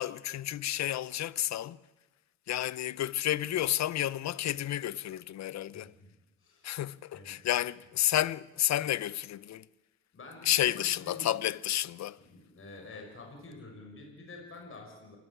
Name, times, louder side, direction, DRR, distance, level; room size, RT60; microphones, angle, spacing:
voice 1, 0.0-1.8 2.5-5.9 6.6-9.7 10.4-12.2, left 12 dB, 65° left, 0.7 m, -31 dB
voice 2, 5.7-6.1 6.4-6.7 7.1-7.5 10.1-11.3 12.2-15.2, left 3 dB, 45° left, 5.5 m, -48 dB
27.5 x 15.5 x 8.2 m
cardioid pair, 90°, 30 cm